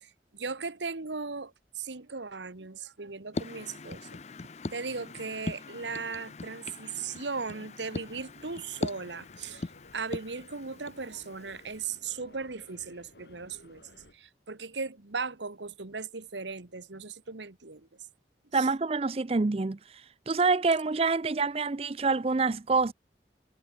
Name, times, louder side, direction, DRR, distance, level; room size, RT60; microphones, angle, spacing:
voice 1, 0.0-4.1 4.7-9.7 9.9-17.9 18.5-18.7, right 4 dB, 90° right, 1.5 m, -38 dB
sound 1, 3.3-12.0, left 3 dB, 40° left, 0.5 m, -41 dB
sound 2, 7.9-14.1, left 1 dB, 70° left, 5.2 m, -56 dB
voice 2, 18.5-22.9, right 4 dB, 35° right, 0.5 m, -27 dB
head